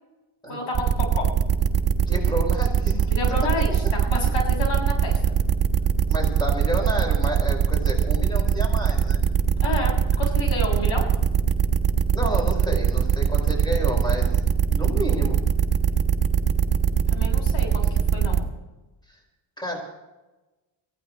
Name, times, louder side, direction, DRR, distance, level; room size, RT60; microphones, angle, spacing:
voice 1, 0.5-1.3 3.1-5.2 9.6-11.1 17.1-18.4, left 2 dB, 65° left, 1 dB, 7.2 m, -30 dB
sound 1, 0.7-18.4, right 8 dB, 40° right, 1.7 m, -21 dB
voice 2, 2.1-3.1 3.4-3.5 6.1-9.2 12.1-14.4 14.7-15.4 19.6-19.8, right 1 dB, 10° left, 1 dB, 5.3 m, -30 dB
23.0 x 16.0 x 3.1 m, 1.1 s
cardioid pair, 105°, 50 cm